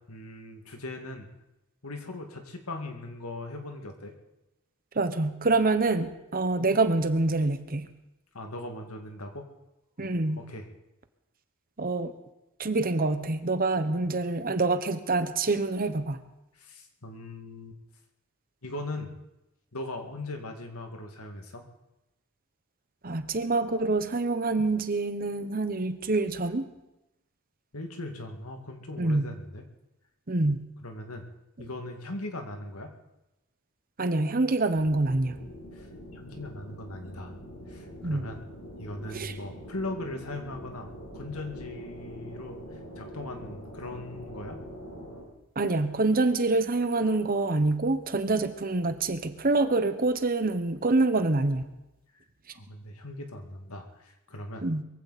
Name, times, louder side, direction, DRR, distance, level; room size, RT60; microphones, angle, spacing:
voice 1, 0.1-1.3 1.8-4.1 8.3-9.5 10.0-10.1 10.4-10.7 16.6-17.8 18.6-19.1 19.7-21.6 27.7-29.6 30.8-31.2 31.6-32.9 35.7-35.9 36.1-37.3 37.7-38.4 38.8-44.6 52.5-54.7, left 2 dB, 90° left, 4 dB, 2.1 m, -39 dB
voice 2, 4.9-7.9 10.0-10.4 11.8-12.1 12.6-16.2 23.0-26.6 29.0-29.2 30.3-30.6 34.0-35.4 38.0-38.3 39.1-39.3 45.6-51.6 54.6-54.8, right 2 dB, 40° right, 10 dB, 1.0 m, -26 dB
sound 1, 34.7-45.2, equal, 70° left, 6.9 m, -44 dB
22.0 x 15.5 x 4.2 m, 0.95 s
head